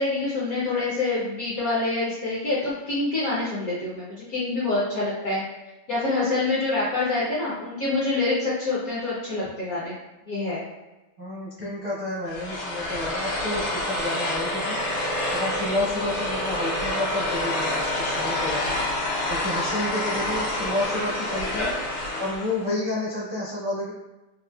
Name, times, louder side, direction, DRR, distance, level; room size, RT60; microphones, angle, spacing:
voice 1, 0.0-5.4 5.9-10.0 10.3-10.6, left 3 dB, 70° left, -7 dB, 0.8 m, -26 dB
voice 2, 11.2-18.8 19.3-21.7 22.2-23.9, left 1 dB, 55° right, -10 dB, 0.6 m, -30 dB
sound 1, 12.3-22.6, left 1 dB, 85° left, 1.7 m, -27 dB
4.1 x 2.5 x 2.3 m, 1.1 s
omnidirectional pair, 2.3 m